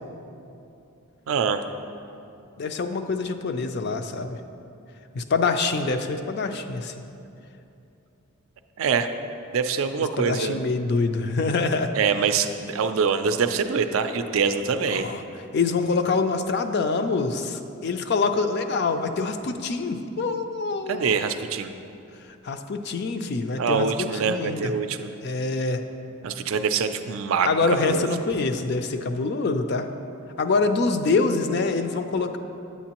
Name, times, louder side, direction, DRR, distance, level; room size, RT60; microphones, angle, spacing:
voice 1, 1.3-1.6 8.8-9.1 9.5-10.6 11.9-15.1 20.9-21.7 23.6-25.1 26.2-28.1, right 6 dB, 70° right, 9 dB, 0.4 m, -24 dB
voice 2, 2.6-4.4 5.1-6.9 10.2-11.9 14.9-15.2 15.5-21.2 22.4-24.7 25.2-25.8 27.4-29.9 30.4-32.4, left 4 dB, 50° left, 8 dB, 0.4 m, -25 dB
8.5 x 8.3 x 2.9 m, 2.7 s
head